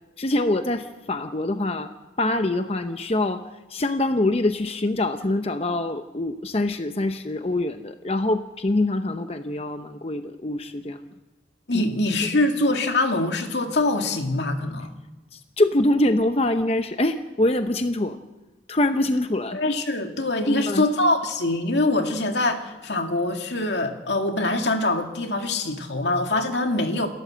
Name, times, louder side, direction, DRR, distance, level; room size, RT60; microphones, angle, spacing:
voice 1, 0.2-1.9 2.2-3.4 3.7-11.1 15.3-18.2 18.7-19.6 20.5-20.8, left 1 dB, 35° left, 8 dB, 0.8 m, -24 dB
voice 2, 11.7-14.9 19.5-27.1, left 2 dB, 80° left, 5 dB, 2.2 m, -24 dB
28.5 x 13.5 x 7.6 m, 1.2 s
head